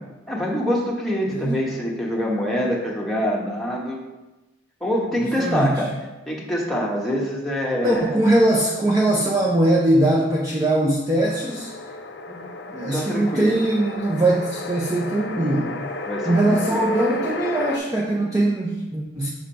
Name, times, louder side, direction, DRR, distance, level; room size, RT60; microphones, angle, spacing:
voice 1, 0.3-4.0 4.8-5.9 6.3-8.1 12.2-12.4 12.7-13.5 16.1-16.9, equal, ahead, -4 dB, 1.1 m, -25 dB
voice 2, 1.3-1.6 5.4-5.8 7.8-11.7 12.7-15.8 16.3-19.3, right 1 dB, 20° right, -3 dB, 0.5 m, -21 dB
sound 1, 11.2-17.8, left 2 dB, 55° left, 0.5 m, -33 dB
6.1 x 3.7 x 5.6 m, 1.0 s
head